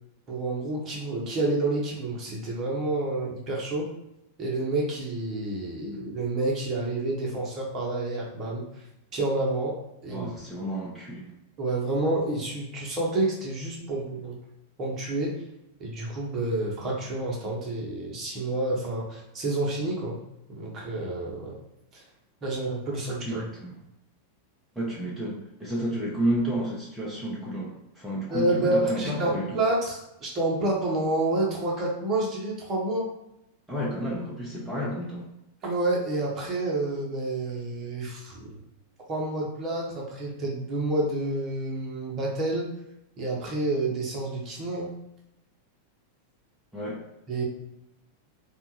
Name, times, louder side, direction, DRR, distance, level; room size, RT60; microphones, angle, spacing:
voice 1, 0.3-3.9 4.4-8.6 9.1-9.7 10.0-10.3 11.6-14.4 14.8-15.4 15.8-20.2 20.5-21.6 21.9-22.0 22.4-23.4 28.3-33.1 35.6-38.6 39.1-42.7 43.2-44.9 47.3-47.4, right 2 dB, 30° right, -3 dB, 1.0 m, -29 dB
voice 2, 10.1-11.3 23.2-23.8 24.7-29.5 33.7-35.3 46.7-47.0, right 1 dB, 5° right, -6 dB, 0.7 m, -31 dB
3.7 x 2.4 x 2.8 m, 0.87 s
figure-of-eight pair, 90°, 0 cm